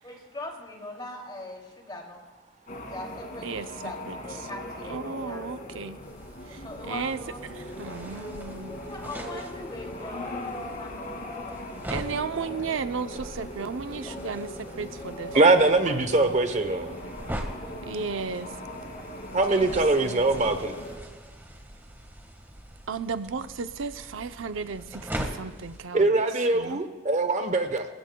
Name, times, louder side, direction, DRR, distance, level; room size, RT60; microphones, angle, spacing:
voice 1, 0.0-2.2 2.9-4.0 4.2-5.4 6.5-7.4 7.9-8.0 8.9-12.0 12.4-12.5 14.0-14.1 15.3-15.4 17.6-17.8 19.2-20.0, left 2 dB, 25° left, 0 dB, 2.7 m, -41 dB
sound 1, 2.7-21.0, left 1 dB, 45° left, 2.3 m, -40 dB
voice 2, 3.4-4.5 4.9-6.0 6.5-8.8 11.9-16.4 17.8-18.5 19.3-19.8 20.0-20.6 22.9-26.2 26.5-26.8, right 5 dB, 90° right, 10 dB, 0.6 m, -35 dB
sound 2, 6.0-25.8, right 1 dB, 10° right, 1.5 m, -42 dB
voice 3, 15.3-16.9 19.3-20.8 25.9-27.9, right 2 dB, 40° right, 8 dB, 0.8 m, -22 dB
27.0 x 16.0 x 2.3 m, 1.4 s
head